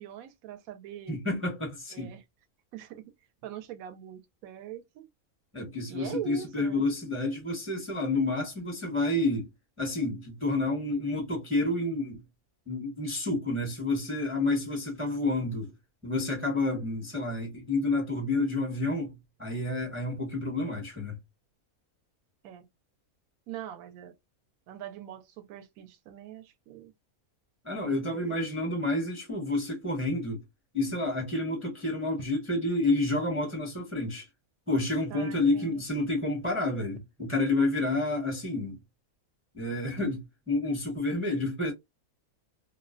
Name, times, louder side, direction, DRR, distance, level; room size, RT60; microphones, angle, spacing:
voice 1, 0.0-1.2 1.9-2.2 2.7-3.1 3.4-5.1 5.9-6.8 22.4-22.7 23.5-24.1 24.7-26.9 27.9-28.8 35.1-35.8, right 10 dB, 75° right, 1.0 m, -42 dB
voice 2, 1.1-2.1 5.5-9.5 9.8-12.2 12.7-15.7 16.0-19.1 19.4-21.2 27.6-30.4 30.7-34.3 34.7-38.8 39.5-41.7, left 2 dB, 10° right, 0.7 m, -29 dB
2.4 x 2.1 x 2.4 m
omnidirectional pair, 1.5 m